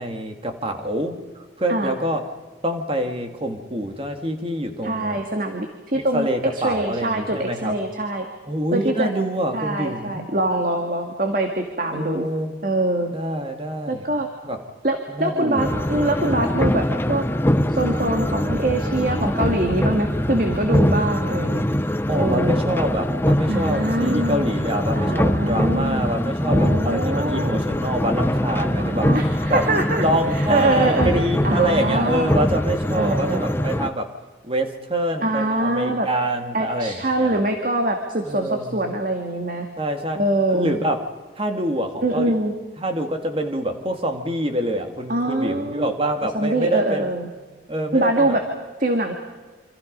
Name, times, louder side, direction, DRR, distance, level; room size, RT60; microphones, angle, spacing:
voice 1, 0.0-2.3 2.6-5.2 5.9-7.7 8.5-10.3 11.9-12.6 13.1-14.1 14.4-14.6 15.1-15.8 22.1-29.1 29.5-29.6 30.0-34.1 34.4-37.4 38.3-38.8 39.8-40.2 40.5-41.0 41.4-42.3 42.8-47.1 47.7-48.3, right 1 dB, 30° right, 5 dB, 2.1 m, -26 dB
voice 2, 4.8-8.3 8.7-9.1 9.5-12.3 12.6-13.1 13.9-14.3 14.8-17.2 17.7-21.6 22.2-22.6 23.5-24.5 25.0-26.0 26.5-27.7 28.7-30.0 30.3-32.3 32.9-33.4 35.2-36.1 36.5-39.7 40.1-40.7 42.0-42.5 45.1-45.9 46.3-47.3 47.9-48.4 48.8-49.1, right 1 dB, 45° right, 4 dB, 2.0 m, -23 dB
sound 1, 15.6-33.9, left 1 dB, 10° left, 0.7 m, -23 dB
27.5 x 26.0 x 5.4 m, 1.4 s
head